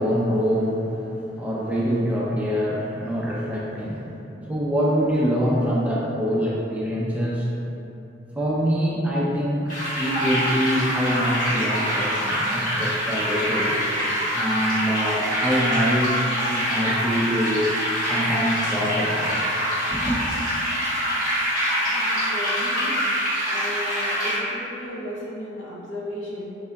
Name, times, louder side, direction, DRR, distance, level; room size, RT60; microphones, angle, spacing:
voice 1, 0.0-7.6 8.4-13.8 14.3-17.8 18.0-20.2, equal, 5° right, -6 dB, 0.3 m, -25 dB
sound 1, 9.7-24.4, equal, 45° left, 1.1 m, -25 dB
voice 2, 21.9-23.0 23.5-26.6, equal, 75° left, -5 dB, 0.7 m, -34 dB
3.7 x 3.5 x 2.2 m, 2.8 s
head